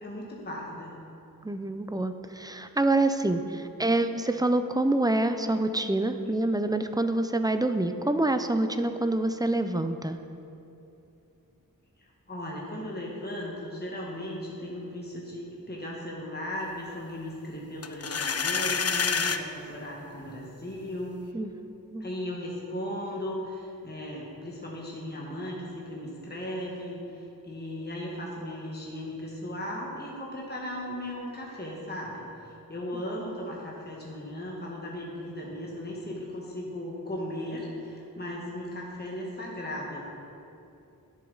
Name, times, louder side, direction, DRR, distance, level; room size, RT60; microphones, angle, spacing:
voice 1, 0.0-0.9 12.0-21.3 22.0-40.0, left 1 dB, 25° left, -3 dB, 1.3 m, -37 dB
voice 2, 1.4-10.2 21.3-21.5 21.9-22.1, right 2 dB, 10° right, 8 dB, 0.4 m, -26 dB
sound 1, 17.8-19.4, left 5 dB, 45° left, 0.4 m, -27 dB
11.0 x 7.1 x 3.9 m, 2.8 s
wide cardioid pair, 55°, 37 cm